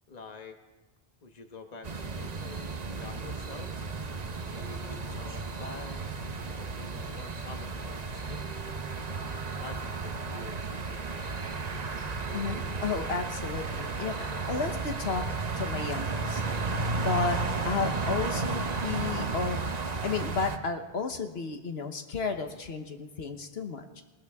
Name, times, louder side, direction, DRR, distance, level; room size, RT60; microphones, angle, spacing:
voice 1, 0.1-0.6 1.2-3.7 4.5-8.7 9.6-11.0, left 4 dB, 40° left, 5 dB, 1.3 m, -47 dB
sound 1, 1.8-20.6, right 4 dB, 40° right, 1.0 m, -33 dB
voice 2, 12.3-15.2 15.6-17.4 17.6-19.6 20.0-24.0, left 5 dB, 75° left, 5 dB, 1.3 m, -33 dB
20.0 x 20.0 x 3.6 m, 1.2 s
omnidirectional pair, 1.1 m